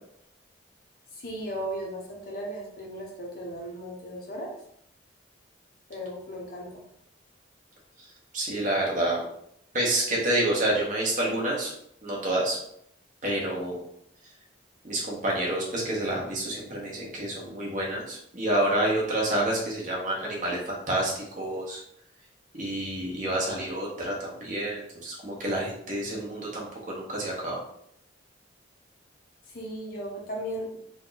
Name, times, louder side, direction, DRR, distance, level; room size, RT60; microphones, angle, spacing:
voice 1, 1.1-4.5 5.9-6.8 29.5-30.8, equal, 50° left, -2 dB, 1.0 m, -36 dB
voice 2, 8.3-9.2 9.7-11.7 12.0-12.6 13.2-13.8 14.8-21.8 22.5-27.6, right 1 dB, 40° right, -4 dB, 1.2 m, -28 dB
3.7 x 2.6 x 4.0 m, 0.72 s
head